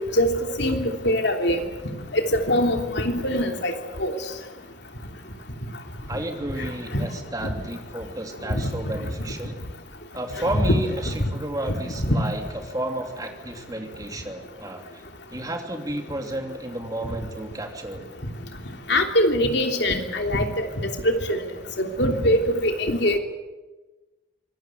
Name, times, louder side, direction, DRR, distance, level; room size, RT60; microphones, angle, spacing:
voice 1, 0.6-1.6 2.1-3.7 4.0-4.1 6.6-6.7 6.9-7.0 8.5-8.6 10.6-10.7 12.1-12.2 18.9-21.4 21.8-23.2, equal, 55° left, 4 dB, 3.1 m, -22 dB
voice 2, 6.1-9.6 10.1-15.0 15.3-18.0, right 1 dB, 20° right, 4 dB, 2.9 m, -32 dB
24.5 x 19.0 x 9.2 m, 1.2 s
head